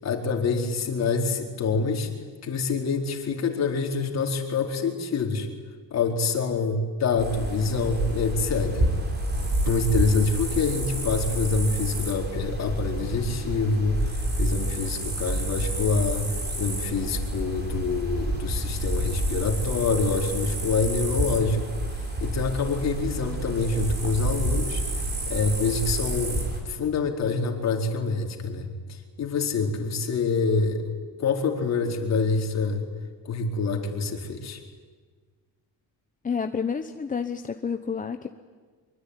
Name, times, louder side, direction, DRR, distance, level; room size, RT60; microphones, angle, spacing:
voice 1, 0.0-2.1 2.4-5.5 5.9-8.9 9.7-16.3 16.6-21.6 22.2-24.8 25.3-30.9 31.2-32.8 33.2-34.6, left 4 dB, 40° left, 2 dB, 4.4 m, -26 dB
sound 1, 7.2-26.6, right 1 dB, 25° right, 6.1 m, -29 dB
voice 2, 36.2-38.3, left 6 dB, 20° left, 7 dB, 1.0 m, -29 dB
24.5 x 24.0 x 9.9 m, 1.5 s
cardioid pair, 145°, 40 cm